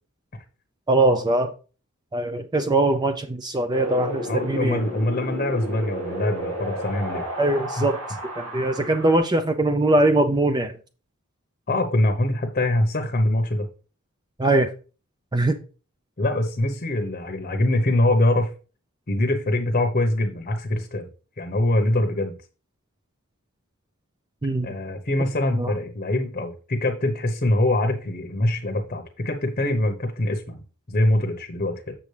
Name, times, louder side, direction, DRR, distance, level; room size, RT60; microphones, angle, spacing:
voice 1, 0.9-1.5 2.1-4.8 7.4-8.0 8.4-10.7 14.4-14.7 15.3-15.6 24.4-24.8 25.5-25.7, right 2 dB, 20° right, 0.4 m, -21 dB
Wind, 3.7-9.2, right 1 dB, 75° right, 2.5 m, -32 dB
voice 2, 4.3-7.2 7.8-7.9 11.7-13.7 16.2-18.5 19.1-21.1 21.4-22.3 24.6-32.0, left 1 dB, 35° left, 0.9 m, -23 dB
7.2 x 6.8 x 3.2 m
head